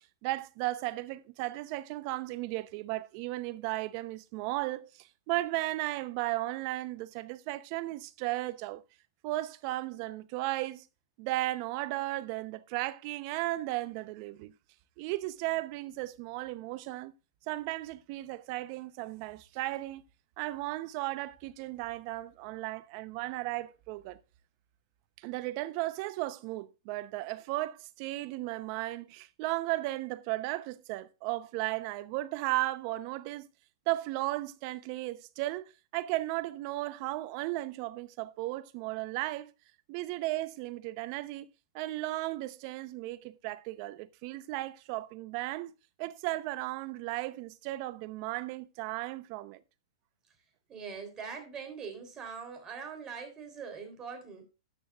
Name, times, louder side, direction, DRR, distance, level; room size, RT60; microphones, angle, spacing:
voice 1, 0.0-8.8 9.2-10.9 11.2-14.5 15.0-17.1 17.5-20.0 20.4-24.2 25.2-33.5 33.9-39.5 39.9-41.5 41.7-45.7 46.0-49.6, right 18 dB, 45° right, 0.7 m, -35 dB
voice 2, 50.7-54.4, right 6 dB, 25° right, 3.5 m, -42 dB
12.5 x 9.4 x 2.4 m
hypercardioid pair, 125°, 3 cm